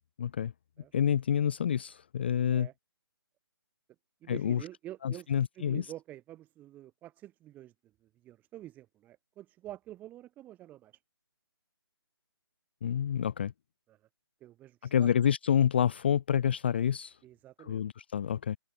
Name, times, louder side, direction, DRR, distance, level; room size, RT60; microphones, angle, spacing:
voice 1, 0.2-0.5 0.9-2.7 4.3-4.6 5.0-5.9 12.8-13.5 14.9-17.2 17.6-18.6, left 9 dB, 25° left, 0.4 m, -28 dB
voice 2, 4.2-5.3 5.6-7.7 8.0-11.0 13.9-14.0 14.4-15.1 17.2-17.8, right 14 dB, 10° right, 3.7 m, -48 dB
open air
figure-of-eight pair, 145°, 13 cm